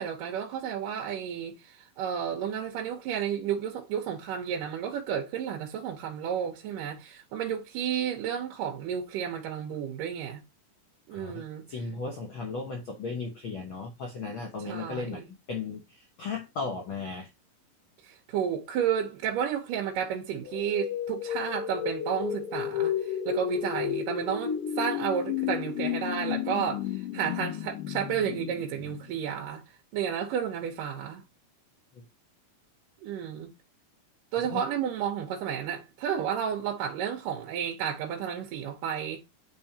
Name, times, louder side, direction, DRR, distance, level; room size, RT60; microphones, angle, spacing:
voice 1, 0.0-10.4 11.1-11.6 14.6-15.3 18.3-29.6 29.9-31.2 33.0-33.5 34.3-39.2, right 8 dB, 80° right, 2.6 m, -32 dB
voice 2, 11.1-11.4 11.7-17.3 31.9-32.0 34.4-34.6, left 4 dB, 70° left, 1.2 m, -36 dB
sound 1, 20.4-29.4, left 9 dB, 90° left, 2.7 m, -32 dB
10.0 x 3.6 x 2.8 m
omnidirectional pair, 3.8 m